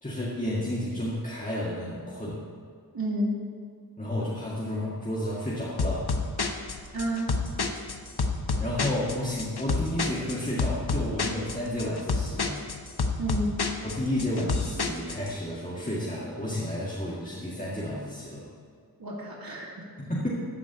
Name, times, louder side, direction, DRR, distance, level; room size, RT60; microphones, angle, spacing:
voice 1, 0.0-2.4 4.0-6.1 8.6-12.6 13.8-18.5 20.0-20.3, left 1 dB, 20° left, -7 dB, 2.0 m, -31 dB
voice 2, 2.9-3.4 6.9-7.4 13.2-13.6 19.0-19.9, right 1 dB, 70° right, -5 dB, 2.2 m, -30 dB
sound 1, 5.8-15.3, left 3 dB, 90° left, 0.9 m, -29 dB
14.0 x 5.0 x 8.2 m, 2.2 s
wide cardioid pair, 50°, 38 cm